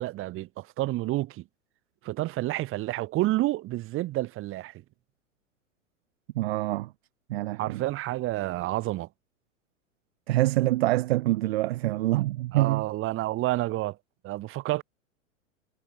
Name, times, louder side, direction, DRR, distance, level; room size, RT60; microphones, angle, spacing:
voice 1, 0.0-1.4 2.0-4.8 7.6-9.1 12.5-14.0 14.2-14.8, right 17 dB, 30° right, 1.7 m, -29 dB
voice 2, 6.3-6.9 7.3-7.8 10.3-12.9, right 17 dB, 50° right, 0.5 m, -25 dB
figure-of-eight pair, 95°, 39 cm